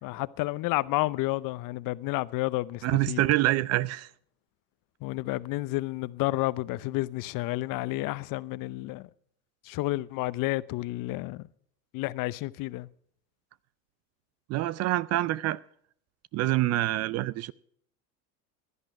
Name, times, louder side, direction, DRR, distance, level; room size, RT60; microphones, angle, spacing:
voice 1, 0.0-3.2 5.0-9.1 9.6-11.5 11.9-12.9, left 19 dB, 45° left, 0.7 m, -30 dB
voice 2, 2.8-4.1 14.5-15.6 16.3-17.5, right 16 dB, 35° right, 0.4 m, -26 dB
16.0 x 11.0 x 4.7 m
hypercardioid pair, 90°, 45 cm